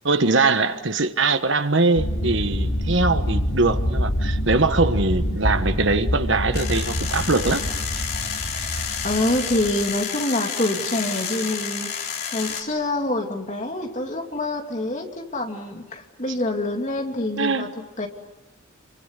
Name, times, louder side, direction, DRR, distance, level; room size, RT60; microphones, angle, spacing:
voice 1, 0.0-7.6 17.4-17.6, right 3 dB, 65° right, 1.3 m, -22 dB
sound 1, 2.0-9.8, equal, 70° left, 2.9 m, -26 dB
sound 2, 6.5-12.6, left 7 dB, 50° left, 4.0 m, -30 dB
voice 2, 9.0-11.9 12.3-18.1, left 1 dB, 35° left, 2.9 m, -26 dB
28.5 x 24.0 x 8.3 m
head